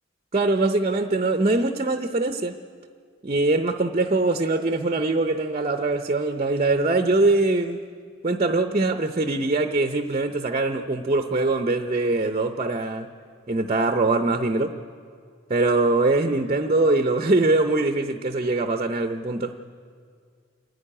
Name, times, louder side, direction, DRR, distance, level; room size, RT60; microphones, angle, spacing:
voice 1, 0.3-2.5 3.2-7.8 8.2-13.1 13.5-14.7 15.5-19.5, right 2 dB, 30° right, 7 dB, 0.6 m, -22 dB
27.0 x 10.0 x 9.8 m, 2.2 s
head